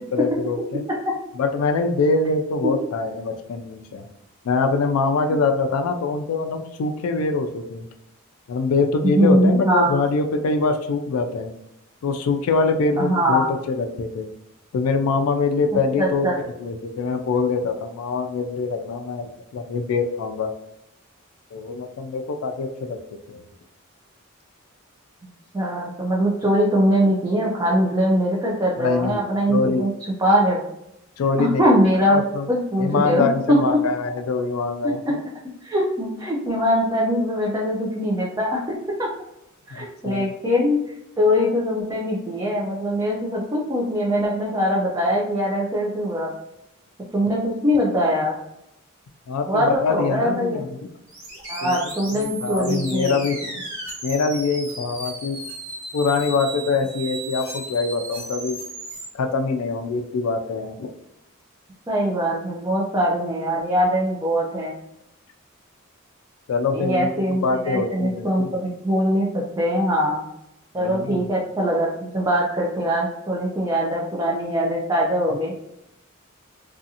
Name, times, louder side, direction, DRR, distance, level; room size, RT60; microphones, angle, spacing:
voice 1, 0.1-0.8 1.4-4.1 4.4-7.9 8.5-11.5 12.0-14.3 14.7-16.3 16.6-20.5 21.5-23.0 23.3-23.4 28.8-29.2 29.5-29.8 31.2-31.7 32.0-32.5 32.8-35.0 39.7-40.3 49.3-50.8 51.6-51.7 52.1-53.6 54.0-55.4 55.9-58.6 59.1-60.9 66.5-68.6 70.8-71.2, left 4 dB, 80° left, 6 dB, 0.3 m, -24 dB
voice 2, 9.0-10.0 13.0-13.5 15.7-16.4 25.5-29.9 30.2-30.6 31.4-32.2 32.5-33.2 33.7-33.8 35.6-38.6 39.0-39.1 39.7-40.8 41.2-46.3 47.1-48.4 49.5-50.6 51.5-53.2 61.9-64.8 66.7-70.2 70.7-75.5, equal, 15° right, -4 dB, 0.4 m, -22 dB
sound 1, 51.1-59.1, right 1 dB, 60° right, 1.4 m, -35 dB
2.5 x 2.4 x 2.7 m, 0.82 s
head